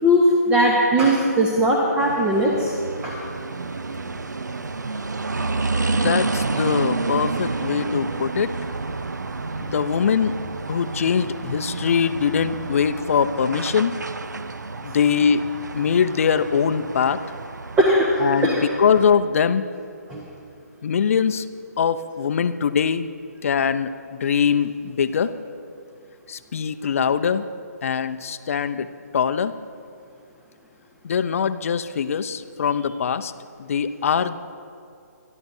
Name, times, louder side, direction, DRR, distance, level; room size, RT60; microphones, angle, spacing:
voice 1, 0.0-2.7 3.0-3.2 17.8-18.6 20.1-20.2, equal, 10° right, -2 dB, 1.1 m, -19 dB
sound 1, 2.0-19.2, right 3 dB, 85° right, 0.6 m, -30 dB
voice 2, 5.9-8.5 9.6-10.4 10.7-13.9 14.8-15.4 15.7-17.2 18.2-19.7 20.8-21.5 21.8-23.1 23.4-25.3 26.3-27.4 27.8-28.9 29.1-29.5 31.0-33.3 33.6-34.4, left 7 dB, 50° left, 11 dB, 0.6 m, -22 dB
25.5 x 12.0 x 2.7 m, 2.5 s
figure-of-eight pair, 150°, 9 cm